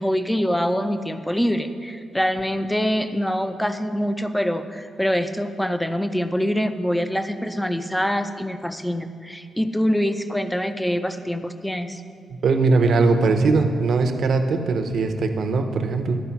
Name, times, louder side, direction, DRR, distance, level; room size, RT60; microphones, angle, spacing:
voice 1, 0.0-12.0, equal, 5° left, 9 dB, 0.3 m, -24 dB
voice 2, 12.4-16.2, right 3 dB, 55° right, 6 dB, 0.7 m, -20 dB
12.5 x 4.7 x 5.8 m, 2.5 s
wide cardioid pair, 175°, 0 cm